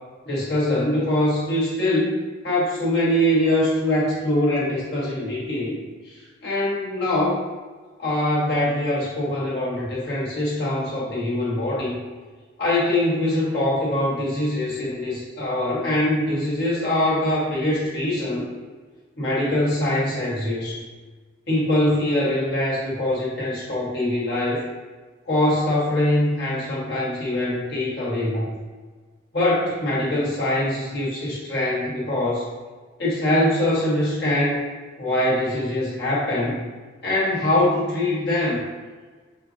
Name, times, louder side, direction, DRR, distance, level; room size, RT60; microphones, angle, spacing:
voice 1, 0.2-2.2 2.4-5.8 6.0-7.4 8.0-12.0 12.6-18.4 19.2-20.9 21.5-24.6 25.3-28.5 29.3-32.5 33.0-34.6 35.0-36.6 37.0-38.6, left 1 dB, 55° left, -6 dB, 1.4 m, -23 dB
5.8 x 2.1 x 2.8 m, 1.4 s
head